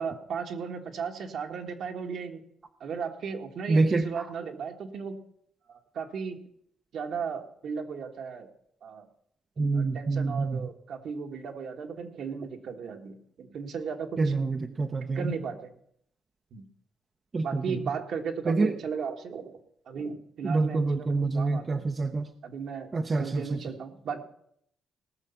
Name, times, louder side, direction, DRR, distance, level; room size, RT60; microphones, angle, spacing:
voice 1, 0.0-2.4 2.8-5.2 5.7-6.4 6.9-8.5 8.8-9.1 9.6-14.3 15.1-15.7 16.5-16.7 17.4-19.6 19.9-21.9 22.4-24.2, right 6 dB, 65° right, 4 dB, 1.6 m, -36 dB
voice 2, 3.7-4.2 9.6-10.6 14.2-15.3 17.3-17.6 18.5-18.7 20.4-22.3 22.9-23.4, right 3 dB, 35° right, 7 dB, 0.7 m, -26 dB
18.5 x 6.5 x 5.8 m, 0.70 s
cardioid pair, 90°, 0 cm